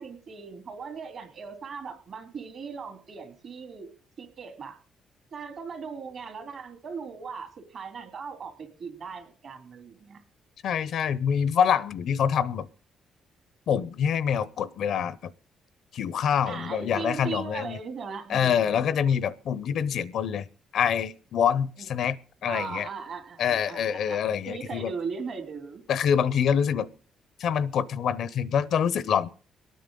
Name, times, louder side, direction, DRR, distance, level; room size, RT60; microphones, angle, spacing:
voice 1, 0.0-3.9 4.2-4.8 5.3-10.2 16.5-18.8 21.8-21.9 22.4-25.8, right 5 dB, 60° right, 5 dB, 2.8 m, -38 dB
voice 2, 10.6-12.7 13.7-15.3 15.9-17.8 18.3-20.5 20.7-22.2 22.4-22.9 23.4-24.9 25.9-26.9 27.4-29.3, left 8 dB, 70° left, 18 dB, 0.5 m, -25 dB
24.0 x 9.3 x 3.8 m, 0.39 s
cardioid pair, 90°, 0 cm